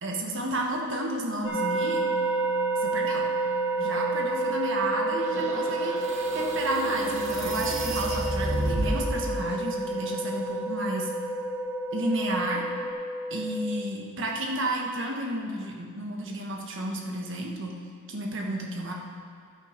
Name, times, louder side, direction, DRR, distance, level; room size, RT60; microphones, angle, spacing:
voice 1, 0.0-2.1 2.8-3.3 3.8-11.1 11.9-12.6 13.3-17.8 18.1-18.9, right 1 dB, 55° right, 0 dB, 1.5 m, -32 dB
sound 1, 1.4-12.9, right 3 dB, 15° left, 3.0 m, -30 dB
sound 2, 3.8-13.8, left 1 dB, 50° left, 1.5 m, -35 dB
sound 3, 5.2-9.2, right 1 dB, 30° right, 1.1 m, -32 dB
12.0 x 8.4 x 5.2 m, 2.1 s
head